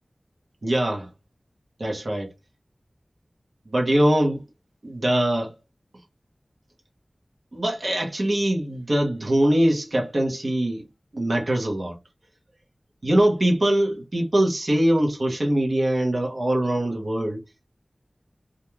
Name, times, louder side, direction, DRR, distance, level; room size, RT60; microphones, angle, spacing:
voice 1, 0.6-1.1 1.8-2.3 3.7-4.4 4.8-5.5 7.5-10.9 11.1-12.0 13.0-17.4, right 1 dB, 70° right, 0.9 m, -22 dB
2.4 x 2.2 x 3.0 m
wide cardioid pair, 70°, 0 cm